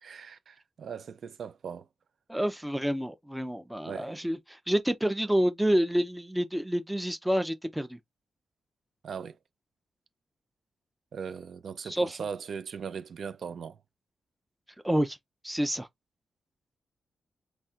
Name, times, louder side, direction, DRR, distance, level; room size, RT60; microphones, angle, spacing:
voice 1, 0.0-1.9 3.8-4.1 9.0-9.4 11.1-13.8, right 6 dB, 65° right, 0.4 m, -39 dB
voice 2, 2.3-8.0 11.8-12.2 14.8-15.2 15.4-15.9, equal, 5° right, 0.5 m, -28 dB
4.1 x 3.2 x 2.4 m
cardioid pair, 105°, 0 cm